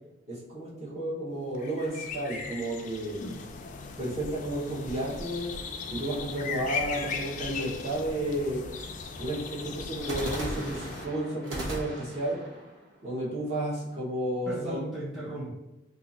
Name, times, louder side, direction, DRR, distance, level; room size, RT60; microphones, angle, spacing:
voice 1, 0.3-3.1 4.0-5.5 5.9-8.6 9.2-12.4 13.0-14.8, right 1 dB, 35° right, -7 dB, 1.0 m, -32 dB
sound 1, 1.5-11.1, left 5 dB, 40° left, 0.3 m, -38 dB
sound 2, 1.8-3.2 10.0-14.0, right 1 dB, 80° right, 0.9 m, -39 dB
voice 2, 3.2-3.7 14.5-15.6, equal, ahead, -8 dB, 0.9 m, -37 dB
2.8 x 2.5 x 3.9 m, 1.0 s
head